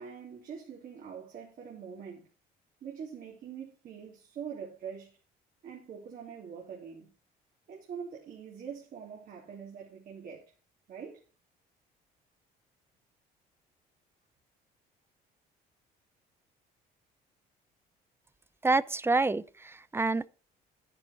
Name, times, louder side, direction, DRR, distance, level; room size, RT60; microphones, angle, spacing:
voice 1, 0.0-2.3 2.8-5.2 5.6-7.1 7.7-10.5 10.9-11.2, right 7 dB, 55° right, 3.6 m, -44 dB
voice 2, 18.6-20.3, right 3 dB, 15° right, 0.5 m, -27 dB
10.5 x 10.5 x 4.5 m
cardioid pair, 110°, 17 cm